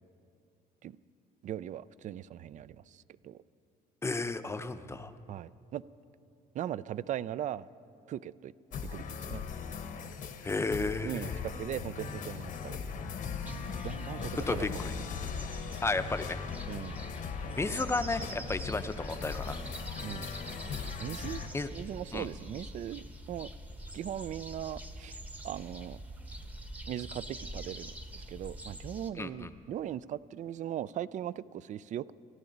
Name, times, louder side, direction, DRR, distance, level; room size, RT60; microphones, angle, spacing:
voice 1, 1.4-3.4 5.3-5.8 6.5-7.7 8.1-8.5 8.9-9.4 11.0-12.9 13.8-14.7 16.7-17.0 20.0-20.3 21.0-21.4 21.7-23.5 23.9-25.2 25.4-26.0 26.9-27.9 28.3-32.1, right 11 dB, 45° right, 19 dB, 0.4 m, -39 dB
voice 2, 4.0-5.1 10.4-11.4 14.5-14.7 15.8-16.4 17.6-19.6 21.5-21.7 22.1-22.3 29.2-29.5, left 3 dB, 15° left, 10 dB, 0.6 m, -33 dB
sound 1, 8.7-21.5, left 6 dB, 50° left, 0.9 m, -39 dB
sound 2, 13.5-29.1, right 1 dB, 10° right, 0.9 m, -44 dB
26.5 x 11.5 x 3.9 m, 2.5 s
cardioid pair, 110°, 17 cm